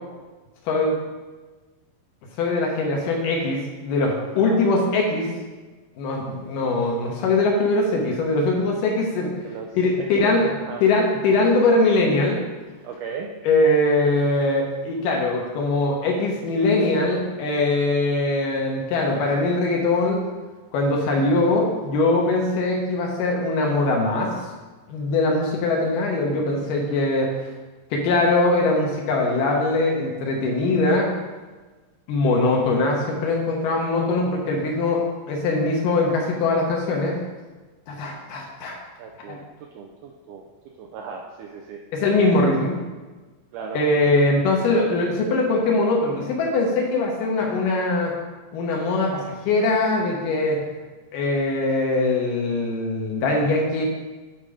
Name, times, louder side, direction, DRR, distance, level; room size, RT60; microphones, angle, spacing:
voice 1, 2.4-5.3 6.0-9.3 9.7-10.5 10.8-12.4 13.5-20.2 20.7-24.3 24.9-27.3 27.9-31.1 32.1-37.2 37.9-38.8 39.3-39.4 41.9-42.8 43.7-48.2 48.5-50.6 51.1-53.8, left 2 dB, 70° left, 0 dB, 2.5 m, -21 dB
voice 2, 4.3-4.6 9.4-9.7 10.0-10.8 12.8-13.3 39.0-40.5 40.8-41.8 43.5-43.9, right 5 dB, 85° right, 2 dB, 1.8 m, -36 dB
9.3 x 4.1 x 4.9 m, 1.3 s
omnidirectional pair, 4.2 m